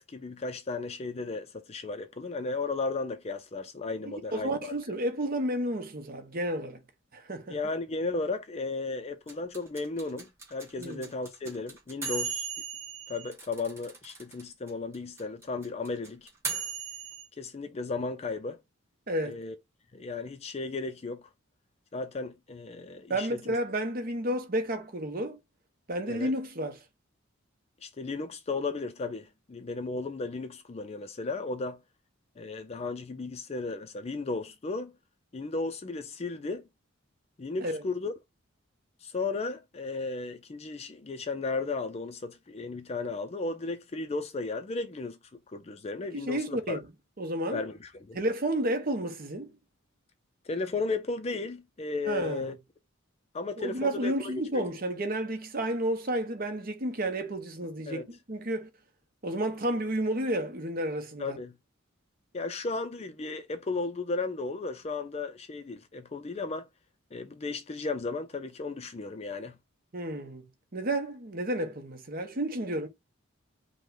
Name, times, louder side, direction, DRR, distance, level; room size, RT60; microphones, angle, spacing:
voice 1, 0.0-4.7 7.5-12.5 13.1-16.3 17.4-18.6 19.2-19.6 19.9-21.2 21.9-23.3 26.1-26.3 27.8-31.8 32.4-34.9 35.3-36.6 37.4-38.1 39.0-45.2 45.5-46.8 47.5-48.2 50.5-52.5 53.3-54.1 54.5-54.6 57.9-58.0 61.2-61.6 62.3-66.7 67.1-69.6, left 3 dB, 30° left, 0.4 m, -35 dB
voice 2, 4.0-6.8 7.1-7.6 10.8-11.1 19.1-19.4 23.1-25.4 25.9-26.8 37.6-37.8 46.1-46.8 47.2-47.6 48.1-49.5 52.1-52.5 53.6-58.7 59.2-61.4 69.9-72.9, right 1 dB, 45° right, 0.9 m, -31 dB
sound 1, 9.3-14.4 14.7-14.8 14.9-17.2, right 5 dB, 15° right, 1.9 m, -36 dB
5.2 x 2.2 x 3.8 m
head